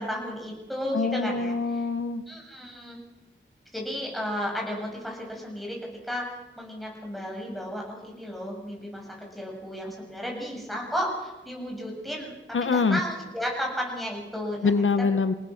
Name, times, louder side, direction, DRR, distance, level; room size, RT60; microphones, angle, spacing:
voice 1, 0.0-1.8 2.3-3.0 3.7-5.8 6.0-6.3 6.6-12.3 12.6-14.8, equal, ahead, -1 dB, 7.7 m, -33 dB
voice 2, 0.9-2.2 12.5-13.0 14.6-15.3, left 4 dB, 90° left, 11 dB, 1.0 m, -24 dB
28.5 x 18.5 x 6.5 m, 1.1 s
wide cardioid pair, 70°, 20 cm